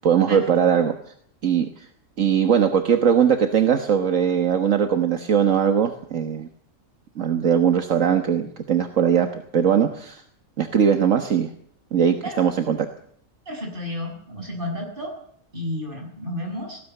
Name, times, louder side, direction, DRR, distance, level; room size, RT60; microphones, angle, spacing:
voice 1, 0.0-0.9 1.4-1.9 2.2-6.5 7.2-10.2 10.6-11.5 11.9-12.9, right 8 dB, 75° right, 6 dB, 1.8 m, -20 dB
voice 2, 13.5-15.1 15.5-16.8, left 1 dB, 40° right, 1 dB, 7.3 m, -31 dB
19.0 x 16.5 x 9.3 m, 0.62 s
omnidirectional pair, 1.4 m